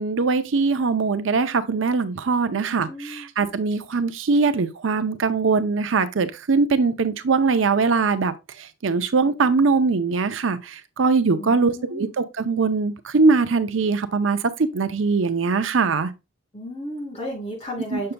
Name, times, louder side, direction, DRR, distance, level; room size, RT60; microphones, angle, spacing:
voice 1, 0.0-8.3 8.8-16.1 17.9-18.1, right 4 dB, 75° right, 0.6 m, -21 dB
voice 2, 2.5-3.3 11.4-12.1 16.5-18.1, equal, 35° left, 3.3 m, -34 dB
6.8 x 6.5 x 2.2 m
head